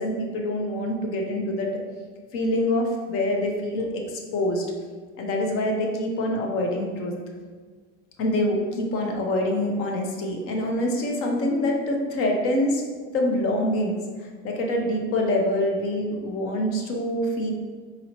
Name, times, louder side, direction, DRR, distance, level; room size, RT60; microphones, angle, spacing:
voice 1, 0.0-1.7 2.3-4.6 5.2-7.1 8.2-12.8 13.1-13.9 14.4-17.5, left 1 dB, 45° left, 1 dB, 0.7 m, -25 dB
4.0 x 2.8 x 2.8 m, 1.5 s
cardioid pair, 145°, 32 cm